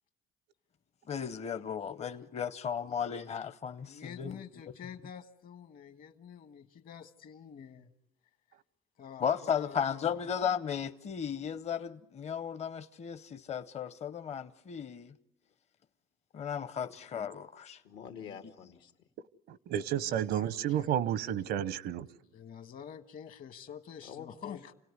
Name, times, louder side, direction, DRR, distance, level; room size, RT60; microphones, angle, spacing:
voice 1, 1.1-4.4 9.2-15.1 16.3-17.8, left 7 dB, 40° left, 0.8 m, -35 dB
voice 2, 3.8-7.9 9.0-10.2 20.0-20.9 22.3-24.7, left 8 dB, 55° left, 1.5 m, -48 dB
voice 3, 17.8-19.1 24.0-24.7, left 8 dB, 90° left, 2.3 m, -47 dB
voice 4, 19.5-22.1, right 10 dB, 80° right, 0.9 m, -31 dB
28.0 x 17.5 x 9.6 m
cardioid pair, 110°, 17 cm